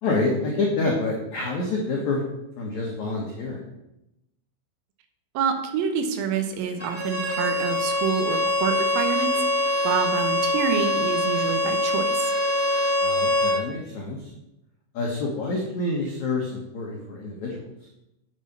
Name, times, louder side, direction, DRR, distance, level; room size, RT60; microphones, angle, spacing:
voice 1, 0.0-2.3 2.6-3.6 13.0-14.3 14.9-17.6, left 2 dB, 65° left, -2 dB, 1.9 m, -27 dB
voice 2, 5.3-12.3, right 6 dB, 75° right, 6 dB, 2.1 m, -27 dB
Bowed string instrument, 6.8-13.6, left 1 dB, 5° left, 1.4 m, -24 dB
8.3 x 8.0 x 6.1 m, 0.89 s
omnidirectional pair, 5.6 m